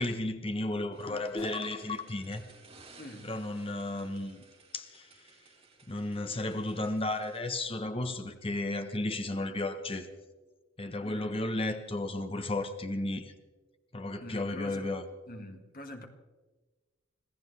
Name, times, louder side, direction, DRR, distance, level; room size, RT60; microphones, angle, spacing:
voice 1, 0.0-2.4 3.2-4.4 4.7-5.3 5.9-10.1 10.8-13.3 13.9-15.0, left 2 dB, 30° left, 1.0 m, -33 dB
sound 1, 0.9-7.4, right 4 dB, 30° right, 3.6 m, -58 dB
sound 2, 1.4-3.9, left 2 dB, 75° left, 3.1 m, -54 dB
voice 2, 3.0-3.3 11.0-11.5 14.2-14.9 15.3-16.1, left 1 dB, 45° left, 1.9 m, -45 dB
26.0 x 16.0 x 3.3 m
head